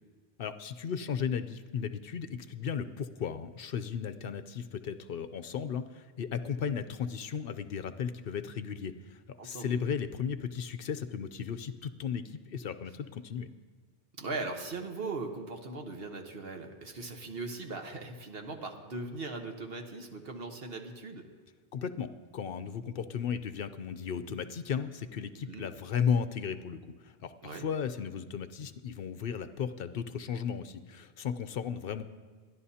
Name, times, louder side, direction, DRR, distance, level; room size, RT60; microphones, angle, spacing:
voice 1, 0.4-13.5 21.7-32.0, left 7 dB, 65° left, 11 dB, 0.8 m, -35 dB
voice 2, 9.4-9.8 14.2-21.2 25.4-25.7 27.4-27.6, right 3 dB, 65° right, 4 dB, 1.4 m, -39 dB
28.0 x 11.0 x 2.8 m, 1.5 s
omnidirectional pair, 1.1 m